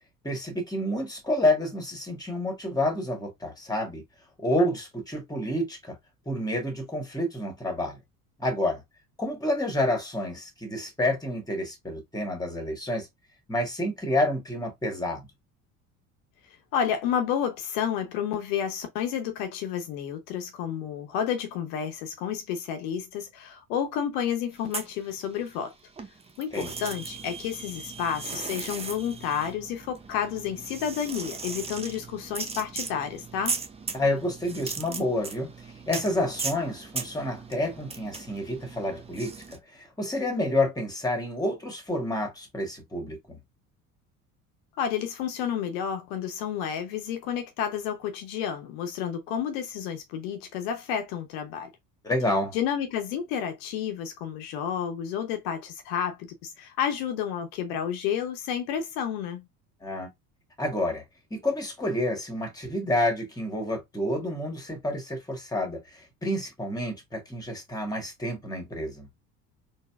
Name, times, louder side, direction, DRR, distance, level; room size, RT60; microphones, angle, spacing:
voice 1, 0.2-4.0 4.4-6.0 6.3-8.0 8.4-8.8 9.2-13.1 13.5-15.3 26.5-26.7 33.9-35.5 35.9-43.4 52.0-52.6 59.8-60.1 60.6-61.0 61.3-69.1, left 1 dB, 10° left, 1.3 m, -29 dB
voice 2, 16.7-25.7 26.4-33.5 44.8-51.7 52.5-59.5, left 8 dB, 65° left, 0.8 m, -30 dB
sound 1, 24.6-25.7 26.0-39.6, right 4 dB, 15° right, 0.6 m, -38 dB
4.0 x 2.1 x 2.3 m
hypercardioid pair, 60°, 46 cm